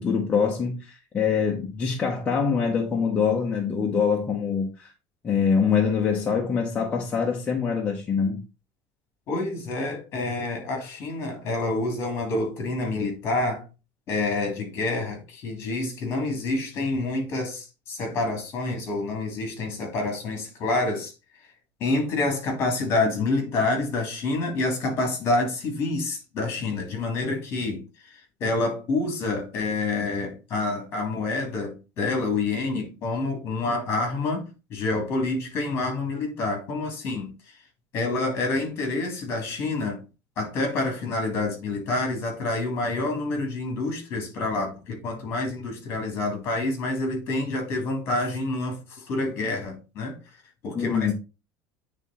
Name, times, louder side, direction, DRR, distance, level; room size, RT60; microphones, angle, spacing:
voice 1, 0.0-4.9 5.2-8.4 50.7-51.1, left 6 dB, 20° left, 0.9 m, -24 dB
voice 2, 9.3-13.6 14.1-21.1 21.8-27.8 28.1-34.4 34.7-37.5 37.9-40.0 40.4-50.2 50.6-51.1, left 2 dB, 35° left, 2.7 m, -27 dB
9.0 x 3.7 x 4.1 m
cardioid pair, 175°, 8 cm